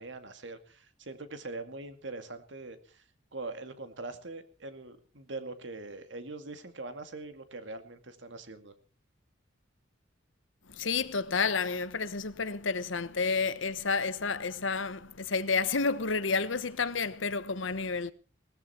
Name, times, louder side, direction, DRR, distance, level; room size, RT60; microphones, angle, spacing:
voice 1, 0.0-3.0 3.3-8.7, right 3 dB, 70° right, 2.3 m, -42 dB
voice 2, 10.7-18.1, left 4 dB, 85° left, 1.1 m, -30 dB
19.5 x 14.0 x 4.4 m
head